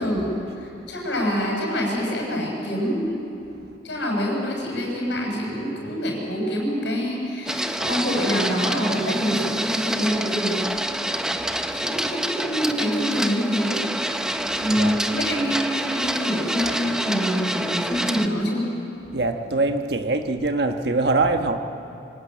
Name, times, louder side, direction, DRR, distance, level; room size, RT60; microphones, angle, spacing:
voice 1, 0.0-3.1 3.8-10.6 11.7-13.8 14.6-18.7, equal, 80° left, -1 dB, 7.1 m, -25 dB
Printer, 7.5-18.3, right 1 dB, 5° right, 0.8 m, -27 dB
voice 2, 14.5-15.0 15.7-15.9 19.1-21.6, right 3 dB, 65° right, 5 dB, 1.3 m, -24 dB
25.5 x 18.0 x 9.2 m, 2.8 s
head